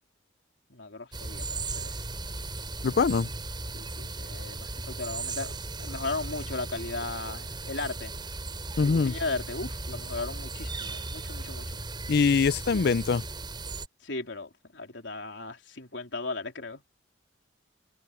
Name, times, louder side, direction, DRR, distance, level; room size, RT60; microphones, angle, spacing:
voice 1, 0.7-1.9 3.7-8.1 8.8-11.8 14.0-16.8, left 3 dB, 75° left, 3.8 m, -36 dB
sound 1, 1.1-13.9, right 3 dB, 25° right, 5.9 m, -37 dB
voice 2, 2.8-3.3 8.8-9.1 12.1-13.2, left 5 dB, 60° left, 0.5 m, -23 dB
head